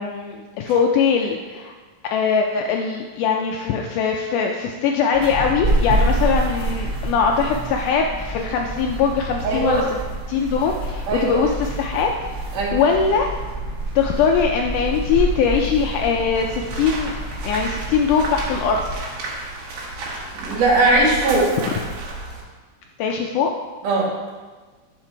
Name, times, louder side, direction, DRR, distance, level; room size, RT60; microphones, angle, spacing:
voice 1, 0.0-1.7 2.1-9.8 10.3-12.1 12.7-13.3 14.0-17.1 17.4-19.1 21.6-21.7 23.0-23.5, left 6 dB, 85° left, 2 dB, 1.8 m, -21 dB
sound 1, 5.1-18.9, right 1 dB, 40° right, 2.0 m, -27 dB
voice 2, 9.4-9.8 11.1-11.4 12.5-12.8 20.3-21.5 23.8-24.1, right 2 dB, 60° right, -5 dB, 3.4 m, -19 dB
sound 2, 16.3-22.4, right 2 dB, 80° right, 3.3 m, -32 dB
10.5 x 5.2 x 4.5 m, 1.4 s
omnidirectional pair, 4.2 m